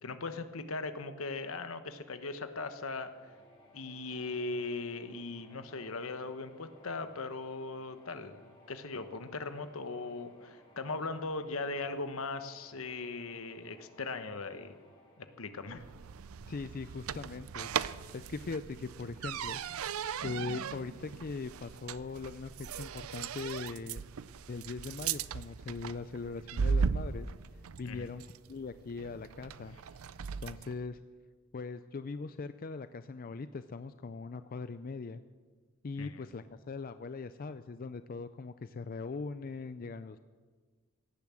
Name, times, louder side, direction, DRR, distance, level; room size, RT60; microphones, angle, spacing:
voice 1, 0.0-3.1 3.7-14.7 15.2-15.8 27.8-28.1 36.0-36.2, left 3 dB, 75° left, 9 dB, 1.1 m, -39 dB
sound 1, 3.1-16.9, left 1 dB, 25° left, 3.0 m, -61 dB
sound 2, 15.7-30.8, right 6 dB, 80° right, 0.5 m, -38 dB
voice 2, 16.5-17.7 18.1-24.0 24.5-27.3 27.8-29.8 30.4-31.0 31.5-35.2 35.8-40.2, left 4 dB, 40° left, 11 dB, 0.4 m, -41 dB
17.0 x 10.5 x 7.6 m, 1.4 s
head